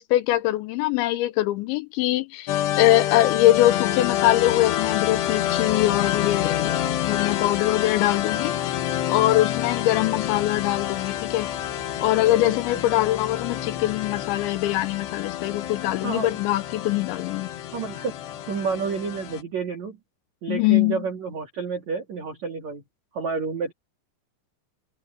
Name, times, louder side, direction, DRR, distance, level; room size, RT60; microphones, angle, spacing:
voice 1, 0.0-8.6 9.1-11.5 12.0-17.5 20.5-21.0, left 15 dB, 85° left, 3.0 m, -23 dB
sound 1, 2.5-19.4, left 12 dB, 70° left, 3.4 m, -28 dB
voice 2, 17.7-18.1 18.5-20.0 20.4-22.8 23.1-23.7, right 5 dB, 45° right, 2.8 m, -30 dB
omnidirectional pair, 5.5 m